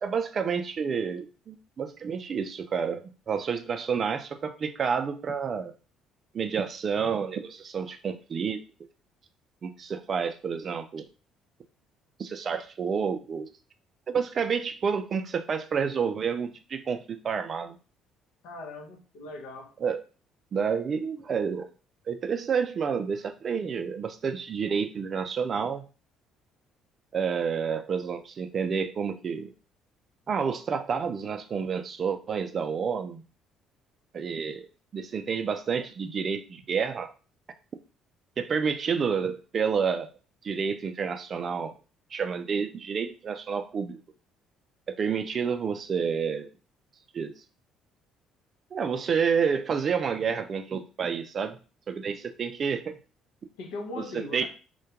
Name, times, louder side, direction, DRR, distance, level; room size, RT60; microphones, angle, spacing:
voice 1, 0.0-5.7 6.3-8.6 9.6-11.0 12.2-13.5 14.1-17.8 19.8-20.0 20.5-21.7 22.1-25.8 27.1-29.5 30.3-33.2 34.1-34.7 34.9-37.1 38.4-40.1 40.4-41.7 42.1-44.0 44.9-46.5 47.1-47.3 48.7-51.6 51.9-53.0 54.1-54.5, right 6 dB, 45° right, 9 dB, 0.3 m, -29 dB
voice 2, 18.4-19.7 53.6-54.5, left 2 dB, 80° left, 2 dB, 0.6 m, -39 dB
2.2 x 2.1 x 2.8 m, 0.34 s
hypercardioid pair, 65°, 0 cm